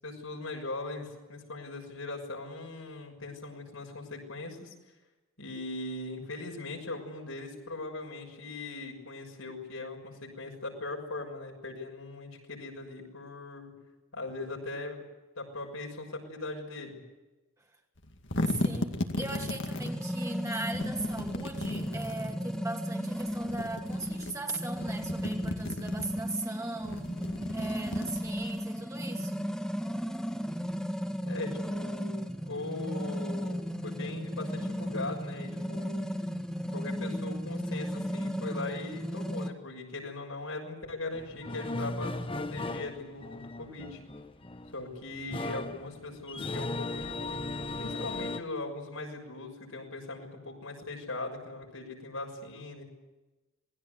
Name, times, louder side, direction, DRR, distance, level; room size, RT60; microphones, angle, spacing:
voice 1, 0.0-4.7 5.4-13.7 14.1-15.0 15.4-17.0 31.2-32.1 32.4-36.0 36.7-44.0 44.7-47.3 47.8-52.8, left 2 dB, 80° left, 0 dB, 6.6 m, -40 dB
sound 1, 18.0-19.9 20.7-22.4 23.3-24.3 24.7-26.2 26.8-28.6, left 1 dB, 60° left, 2.3 m, -35 dB
voice 2, 18.5-27.1 27.5-29.5, right 2 dB, 15° right, 1 dB, 2.5 m, -39 dB
sound 2, 19.7-39.5, equal, 5° left, 1.8 m, -35 dB
sound 3, 41.1-48.4, left 2 dB, 25° left, 1.1 m, -37 dB
27.5 x 20.0 x 8.2 m, 1.1 s
head